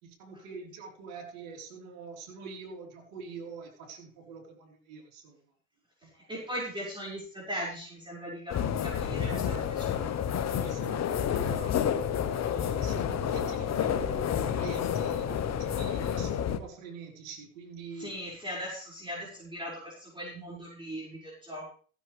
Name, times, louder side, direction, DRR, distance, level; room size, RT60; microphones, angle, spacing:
voice 1, 0.0-5.4 6.0-6.3 9.2-9.5 9.9-10.2 10.5-11.9 12.2-18.2, right 4 dB, 75° right, 0 dB, 4.5 m, -45 dB
voice 2, 6.3-10.0 18.0-21.7, equal, 10° right, -5 dB, 5.9 m, -39 dB
sound 1, 8.5-16.6, left 8 dB, 40° left, 1.3 m, -30 dB
16.0 x 10.0 x 3.5 m, 0.42 s
supercardioid pair, 90°, 41 cm